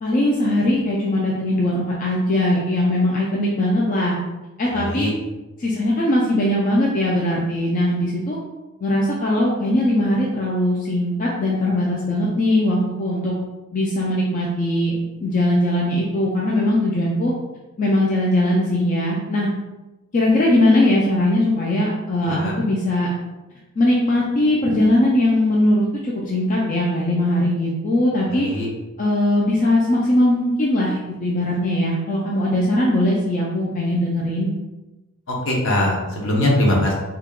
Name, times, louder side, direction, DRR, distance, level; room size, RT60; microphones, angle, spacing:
voice 1, 0.0-4.2 4.6-5.1 5.6-8.4 8.8-13.3 13.7-14.9 15.2-17.3 17.8-19.5 20.1-23.1 23.8-28.5 29.0-34.5, left 1 dB, 40° left, -4 dB, 0.4 m, -20 dB
voice 2, 4.7-5.1 22.2-22.6 28.3-28.7 35.3-36.9, left 1 dB, 65° left, -2 dB, 0.8 m, -21 dB
2.8 x 2.2 x 3.5 m, 1.1 s
head